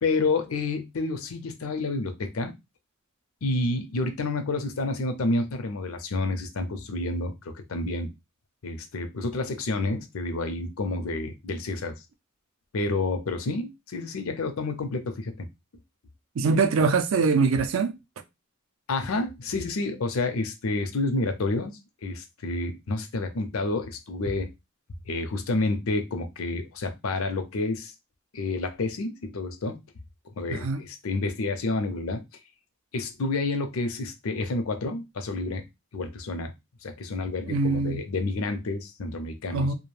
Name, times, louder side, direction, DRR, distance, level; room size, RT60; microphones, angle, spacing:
voice 1, 0.0-2.5 3.4-8.1 8.6-12.0 12.7-15.5 18.9-24.5 25.1-27.9 28.3-29.8 30.4-32.2 32.9-35.6 35.9-36.5 36.8-39.7, left 2 dB, 85° left, 0.6 m, -29 dB
voice 2, 16.4-18.0 30.5-30.9 37.4-38.1 39.5-39.7, right 4 dB, 70° right, 0.4 m, -23 dB
2.4 x 2.1 x 3.2 m
head